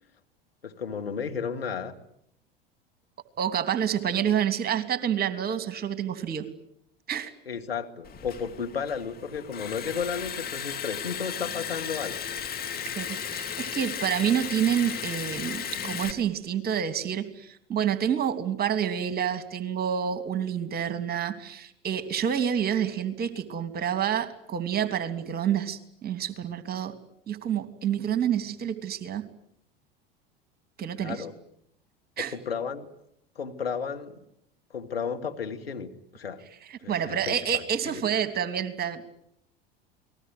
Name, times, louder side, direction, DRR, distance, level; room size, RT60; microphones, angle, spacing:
voice 1, 0.6-2.0 7.5-12.2 31.0-31.3 32.2-32.9 33.4-34.2 34.7-36.4 36.8-38.0, left 6 dB, 85° left, 5 dB, 2.3 m, -33 dB
voice 2, 3.4-6.5 7.1-7.3 13.0-26.9 27.3-29.2 30.8-31.2 32.2-32.3 36.7-39.0, right 9 dB, 30° right, 10 dB, 3.0 m, -28 dB
Liquid, 8.0-16.1, left 8 dB, 30° left, 3.2 m, -35 dB
29.0 x 20.5 x 9.4 m, 0.76 s
figure-of-eight pair, 75°, 30 cm